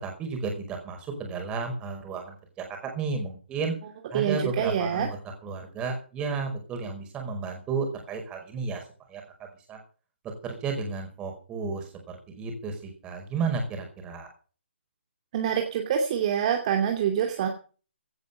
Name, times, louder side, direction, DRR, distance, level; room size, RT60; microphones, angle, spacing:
voice 1, 0.0-2.4 2.8-3.7 4.1-8.8 9.1-9.2 9.7-9.8 10.4-14.3, right 4 dB, 15° right, 3 dB, 5.2 m, -32 dB
voice 2, 4.1-5.1 15.3-17.5, right 8 dB, 35° right, 3 dB, 2.6 m, -26 dB
17.0 x 10.5 x 5.6 m, 0.39 s
figure-of-eight pair, 145°, 6 cm